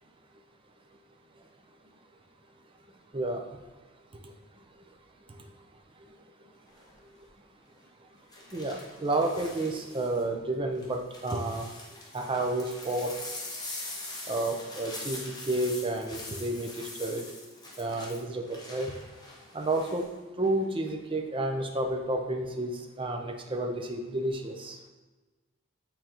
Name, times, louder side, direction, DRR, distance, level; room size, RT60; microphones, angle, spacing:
sound 1, 6.7-7.0 8.3-10.2 10.8-20.1 20.4-20.9, left 2 dB, 20° left, 1.0 m, -43 dB
voice 1, 8.5-11.6 12.1-13.1 14.3-16.7 17.0-17.3 17.8-18.9 19.5-20.1 20.4-24.8, right 2 dB, 25° right, 3 dB, 0.6 m, -30 dB
8.7 x 3.8 x 3.0 m, 1.2 s
head